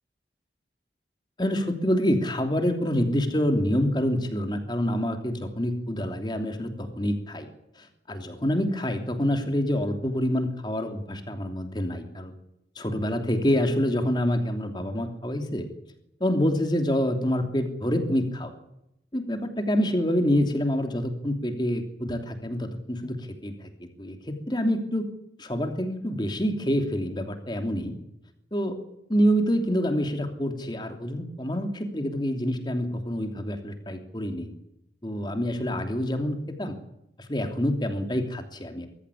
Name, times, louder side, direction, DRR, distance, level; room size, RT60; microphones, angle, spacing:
voice 1, 1.4-7.5 7.8-12.3 12.8-15.7 16.2-18.5 19.1-25.1 25.4-27.9 28.5-28.8 29.1-34.5 35.0-36.7 37.2-38.9, equal, 25° left, 5 dB, 3.0 m, -27 dB
22.5 x 14.5 x 9.9 m, 0.82 s
head